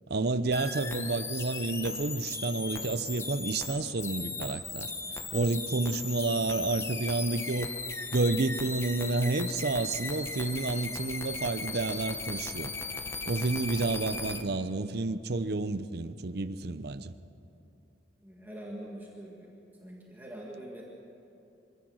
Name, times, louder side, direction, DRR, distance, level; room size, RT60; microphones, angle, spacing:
voice 1, 0.1-4.9 5.3-7.7 8.1-12.7 13.3-17.1, right 3 dB, 65° right, 0.7 m, -30 dB
sound 1, 0.5-14.4, left 3 dB, 15° left, 0.9 m, -37 dB
voice 2, 18.2-19.6 19.8-20.8, right 1 dB, 10° right, 1.9 m, -44 dB
25.5 x 16.5 x 6.4 m
head